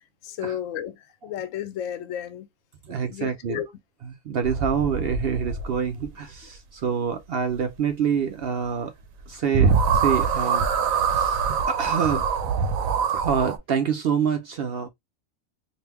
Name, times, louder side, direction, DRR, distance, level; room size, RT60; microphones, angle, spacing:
voice 1, 0.2-2.5 3.1-3.7, left 10 dB, 75° left, 0.9 m, -33 dB
voice 2, 2.8-3.6 4.0-8.9 9.3-12.2 13.1-14.9, right 7 dB, 65° right, 0.6 m, -27 dB
sound 1, 4.4-6.0 9.2-9.3 9.5-13.6, right 6 dB, 80° right, 1.0 m, -24 dB
2.9 x 2.6 x 3.3 m
omnidirectional pair, 1.4 m